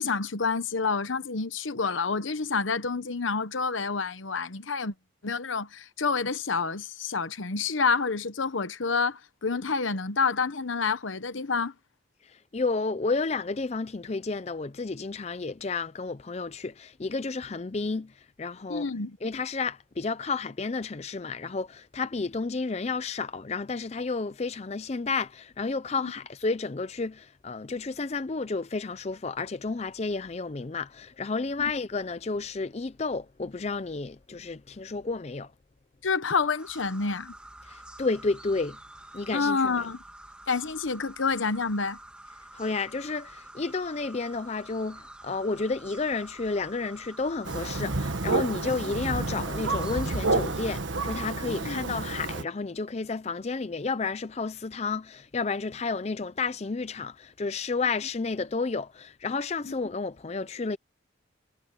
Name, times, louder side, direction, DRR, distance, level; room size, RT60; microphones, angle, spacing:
voice 1, 0.0-4.9 5.2-11.7 18.7-19.2 26.0-26.1 36.0-37.3 39.3-40.0 40.5-42.0 51.5-52.0 59.7-59.8, left 4 dB, 80° left, 1.0 m, -28 dB
voice 2, 12.2-18.9 19.2-35.5 37.6-38.8 39.1-39.9 42.5-60.8, left 4 dB, 35° left, 0.5 m, -31 dB
sound 1, 36.6-50.8, right 1 dB, 5° right, 2.3 m, -48 dB
Thunder, 47.4-52.4, right 3 dB, 75° right, 1.4 m, -29 dB
head